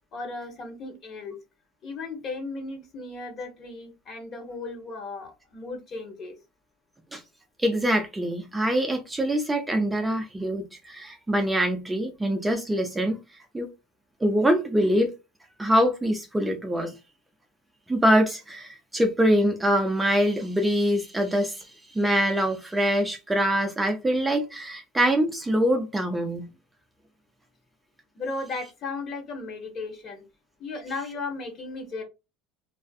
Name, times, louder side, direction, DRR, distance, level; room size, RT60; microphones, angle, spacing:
voice 1, 0.1-1.3 1.8-6.3 28.1-30.2 30.6-32.0, left 3 dB, 40° left, 0.9 m, -35 dB
voice 2, 7.6-13.2 13.5-13.7 14.2-15.1 15.6-16.9 17.9-21.7 21.9-26.4, equal, 10° right, 0.4 m, -24 dB
2.4 x 2.4 x 2.3 m
supercardioid pair, 110°, 0 cm